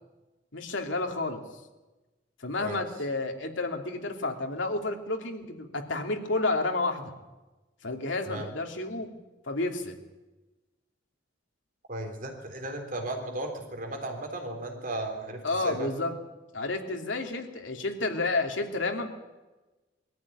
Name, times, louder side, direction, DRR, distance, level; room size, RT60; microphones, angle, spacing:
voice 1, 0.5-1.4 2.4-7.1 7.8-9.1 9.4-9.9 15.4-16.1 16.5-19.1, left 2 dB, 85° left, 3 dB, 2.8 m, -30 dB
voice 2, 11.9-15.9, right 1 dB, 45° right, 4 dB, 3.7 m, -35 dB
22.0 x 14.0 x 9.8 m, 1.1 s
head